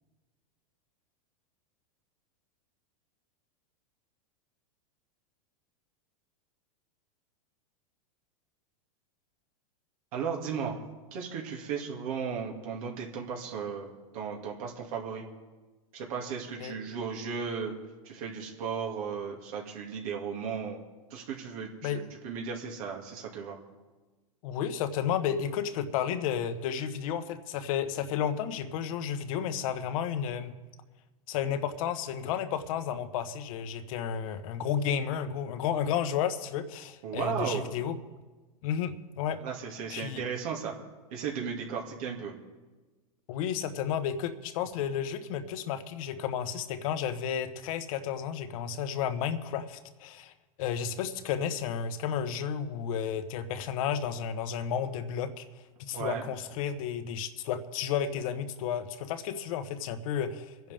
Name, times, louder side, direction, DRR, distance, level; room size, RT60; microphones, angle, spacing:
voice 1, 10.1-10.8 11.1-15.3 15.9-17.7 18.0-20.8 21.1-23.6 37.0-37.7 39.4-40.7 41.1-42.3 55.9-56.3, right 6 dB, 65° right, -1 dB, 2.6 m, -35 dB
voice 2, 24.4-30.5 31.3-38.0 38.6-39.4 39.9-40.2 43.3-50.3 50.6-55.4 55.8-60.7, left 8 dB, 65° left, 9 dB, 1.4 m, -32 dB
25.0 x 10.5 x 3.6 m, 1.2 s
hypercardioid pair, 120°, 19 cm